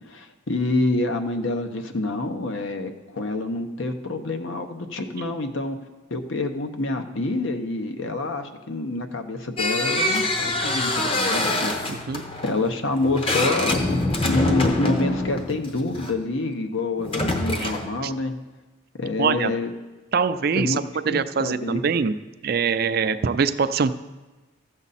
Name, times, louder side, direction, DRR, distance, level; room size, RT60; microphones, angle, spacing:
voice 1, 0.1-5.8 6.1-12.1 12.4-13.8 14.2-18.3 19.0-19.7 20.6-21.8, left 2 dB, 70° left, 6 dB, 0.9 m, -27 dB
sound 1, 9.6-16.1 17.0-18.0, left 1 dB, 25° left, 0.8 m, -25 dB
voice 2, 11.9-12.2 17.6-17.7 18.0-18.1 19.2-19.5 20.1-22.1 22.4-23.9, right 5 dB, 50° right, 12 dB, 0.4 m, -23 dB
14.0 x 7.1 x 4.1 m, 1.2 s
head